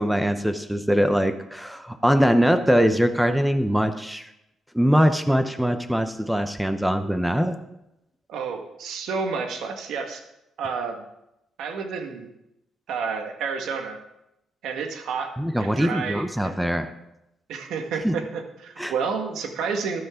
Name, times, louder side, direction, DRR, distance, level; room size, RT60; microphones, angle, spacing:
voice 1, 0.0-4.3 4.7-7.6 15.4-16.9 18.0-18.2 18.8-18.9, equal, 5° right, 8 dB, 0.9 m, -22 dB
voice 2, 8.3-10.2 10.6-11.1 11.6-12.3 12.9-14.0 14.6-16.5 17.5-20.0, right 5 dB, 80° right, 4 dB, 1.8 m, -30 dB
13.5 x 10.5 x 3.8 m, 0.87 s
cardioid pair, 90°, 0 cm